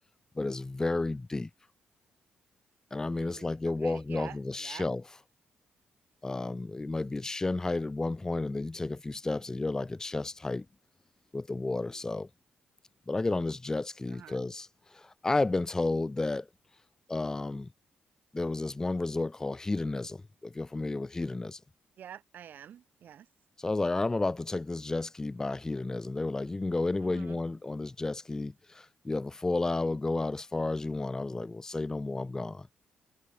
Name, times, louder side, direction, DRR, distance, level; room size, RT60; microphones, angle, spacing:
voice 1, 0.3-1.5 2.9-5.0 6.2-10.7 11.3-12.3 13.1-16.5 17.1-17.7 18.3-21.6 23.6-32.7, left 2 dB, 15° left, 0.5 m, -32 dB
voice 2, 3.1-3.6 3.8-4.9 14.1-14.5 22.0-23.3 27.0-27.4, right 9 dB, 70° right, 1.4 m, -48 dB
cardioid pair, 95°, 3 cm